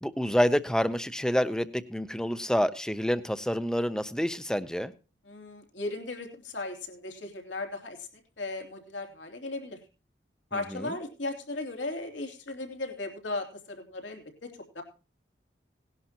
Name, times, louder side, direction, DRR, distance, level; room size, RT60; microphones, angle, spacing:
voice 1, 0.0-4.9 10.5-10.9, equal, 5° left, 13 dB, 0.6 m, -28 dB
voice 2, 5.2-8.1 8.4-9.8 10.5-14.8, left 2 dB, 90° left, 4 dB, 3.0 m, -37 dB
18.5 x 11.0 x 2.9 m, 0.34 s
head